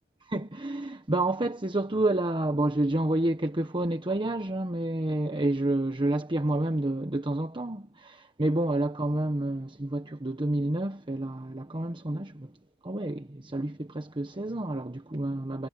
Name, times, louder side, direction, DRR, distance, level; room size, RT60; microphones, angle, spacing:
voice 1, 0.3-12.5 12.8-15.7, right 1 dB, 25° right, 1.2 m, -29 dB
head